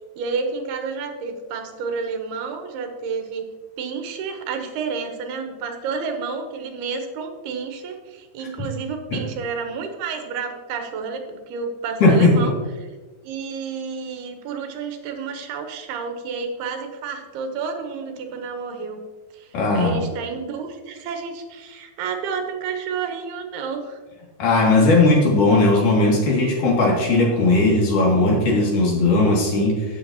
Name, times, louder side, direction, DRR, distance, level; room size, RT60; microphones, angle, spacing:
voice 1, 0.2-3.5 3.8-12.9 13.2-19.0 19.3-24.0, right 5 dB, 80° right, 5 dB, 2.9 m, -30 dB
voice 2, 12.0-12.5 19.5-20.0 24.4-29.9, left 2 dB, 55° left, -2 dB, 3.6 m, -17 dB
17.0 x 6.6 x 2.9 m, 1.3 s
omnidirectional pair, 4.7 m